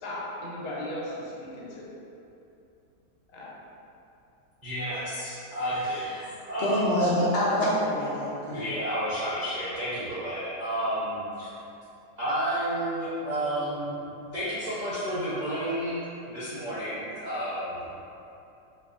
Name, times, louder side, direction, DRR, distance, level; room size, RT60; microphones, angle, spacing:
voice 1, 0.0-1.9 3.3-3.5, left 1 dB, 85° left, -5 dB, 1.3 m, -36 dB
voice 2, 4.6-6.1 6.5-6.8 8.5-11.5 12.2-14.0 14.3-17.8, equal, 55° right, -13 dB, 0.4 m, -31 dB
voice 3, 5.7-6.3 6.6-8.7, left 1 dB, 65° left, -8 dB, 0.7 m, -26 dB
4.3 x 2.6 x 2.4 m, 2.8 s
omnidirectional pair, 1.9 m